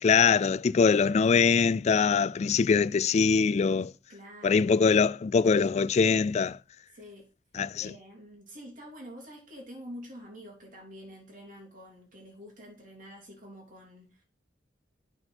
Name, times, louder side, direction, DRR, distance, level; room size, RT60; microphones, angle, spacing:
voice 1, 0.0-3.9 4.4-6.6 7.6-7.9, left 5 dB, 40° left, 0.3 m, -23 dB
voice 2, 4.1-4.8 6.9-7.3 7.8-14.2, equal, 50° right, 3.3 m, -47 dB
8.7 x 4.6 x 5.9 m
head